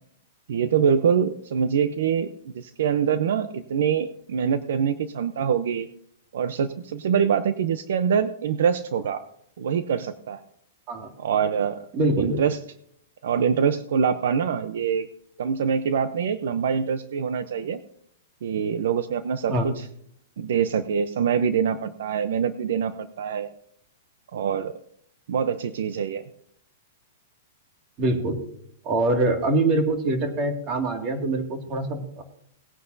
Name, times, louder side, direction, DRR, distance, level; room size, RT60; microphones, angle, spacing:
voice 1, 0.5-5.9 6.3-9.2 9.6-10.4 11.2-11.8 12.2-12.6 13.2-15.1 15.4-17.8 18.4-19.9 20.4-23.5 24.3-24.8 25.3-26.2, right 7 dB, 70° right, 12 dB, 0.7 m, -24 dB
voice 2, 11.9-12.4 19.5-19.7 28.0-28.4 28.8-32.2, right 2 dB, 30° right, 4 dB, 2.2 m, -24 dB
19.0 x 9.6 x 2.7 m, 0.68 s
hypercardioid pair, 155°, 0 cm